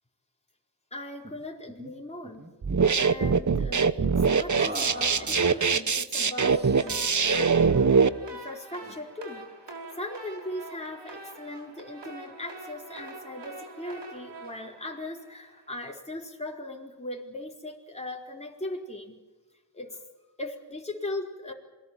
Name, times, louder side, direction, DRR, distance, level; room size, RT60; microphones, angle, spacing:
voice 1, 0.9-2.5 3.0-19.2 19.7-20.0 20.4-21.5, left 1 dB, 15° left, -1 dB, 4.3 m, -39 dB
sound 1, 1.2-1.4 1.7-1.9 2.2-3.0 4.6-5.8 6.5-7.1, right 1 dB, 25° right, 2.9 m, -40 dB
sound 2, 2.6-8.1, right 5 dB, 45° right, 1.1 m, -22 dB
sound 3, 6.6-15.7, right 2 dB, 80° right, 5.0 m, -45 dB
27.5 x 21.0 x 7.5 m, 1.2 s
cardioid pair, 45°, 42 cm